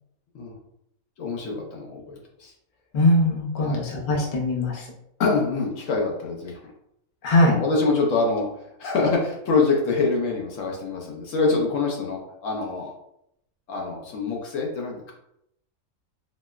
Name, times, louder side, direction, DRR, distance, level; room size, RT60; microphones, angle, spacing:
voice 1, 1.2-2.5 3.6-3.8 5.2-6.6 7.4-8.5 8.8-12.9 13.7-15.1, left 3 dB, 70° left, -1 dB, 1.0 m, -25 dB
voice 2, 2.9-4.8 7.2-7.5, left 1 dB, 50° left, -2 dB, 0.7 m, -21 dB
4.1 x 2.0 x 2.3 m, 0.78 s
omnidirectional pair, 1.4 m